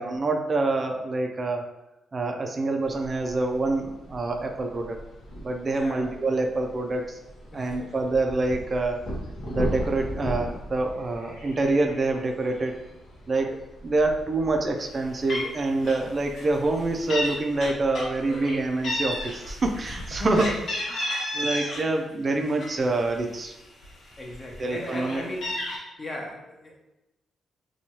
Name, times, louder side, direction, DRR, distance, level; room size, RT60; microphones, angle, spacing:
voice 1, 0.0-1.6 2.1-5.0 5.4-7.2 7.5-9.0 9.5-12.7 13.3-20.5 20.9-23.5 24.6-25.3, right 2 dB, 35° right, 3 dB, 0.3 m, -26 dB
sound 1, 2.8-20.6, equal, 90° left, 0.8 m, -39 dB
voice 2, 5.7-6.1 7.5-7.8 20.1-20.6 24.2-25.6 26.0-26.8, left 1 dB, 35° left, 0 dB, 0.6 m, -36 dB
Meow, 14.9-15.0 15.3-15.5 15.8-16.1 16.3-17.3 17.6-18.5 18.8-21.8 22.2-23.4 23.8-23.9 24.2-25.8, left 1 dB, 70° left, 1.0 m, -32 dB
2.7 x 2.2 x 2.9 m, 0.96 s
cardioid pair, 95°, 0 cm